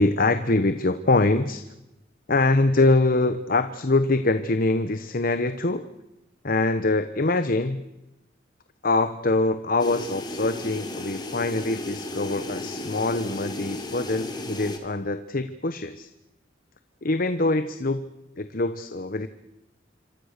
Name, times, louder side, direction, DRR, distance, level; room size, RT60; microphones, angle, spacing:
voice 1, 0.0-1.6 2.3-5.9 6.4-7.9 8.8-16.1 17.0-18.1 18.4-19.3, left 2 dB, 50° left, 10 dB, 1.1 m, -24 dB
sound 1, 9.8-14.8, left 2 dB, 25° left, 3.5 m, -34 dB
27.5 x 25.0 x 6.7 m, 0.97 s
head